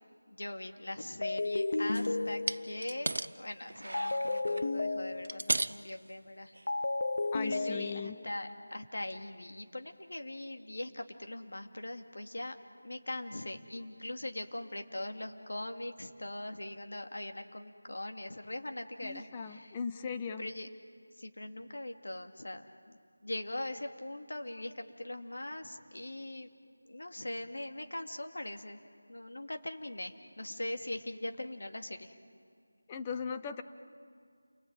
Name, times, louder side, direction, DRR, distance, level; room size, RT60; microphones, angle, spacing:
voice 1, 0.3-6.5 7.4-12.6 12.8-19.8 20.4-20.7 21.2-26.5 26.9-28.8 29.1-32.2, left 1 dB, 70° left, 5 dB, 2.7 m, -41 dB
sound 1, 1.2-2.9 3.9-5.6 6.7-8.4, left 2 dB, 45° left, 0.7 m, -33 dB
sound 2, 1.9-2.1 2.5-3.3 3.7-4.6 5.1-5.9 6.5-6.7 7.2-7.3, right 2 dB, 70° right, 0.7 m, -35 dB
voice 2, 7.3-8.2 19.0-20.5 32.9-33.6, left 6 dB, 10° left, 8 dB, 0.6 m, -38 dB
29.0 x 22.5 x 9.1 m, 2.2 s
figure-of-eight pair, 180°, 0 cm